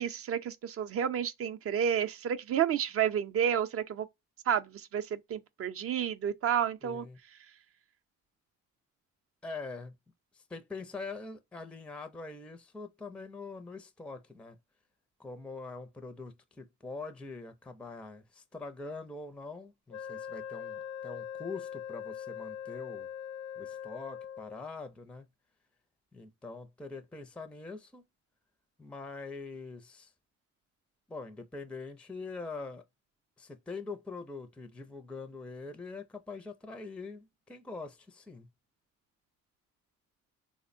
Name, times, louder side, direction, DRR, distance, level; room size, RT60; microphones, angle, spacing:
voice 1, 0.0-4.1 4.5-7.1, right 9 dB, 50° right, 0.5 m, -30 dB
voice 2, 6.8-7.2 9.4-10.0 10.3-14.6 15.2-23.1 23.6-25.3 26.1-28.0 28.8-30.1 31.1-32.8 33.4-38.5, left 3 dB, 5° left, 0.4 m, -43 dB
Wind instrument woodwind instrument, 19.9-24.7, left 9 dB, 70° left, 0.5 m, -41 dB
3.5 x 2.0 x 2.5 m
cardioid pair, 90°, 30 cm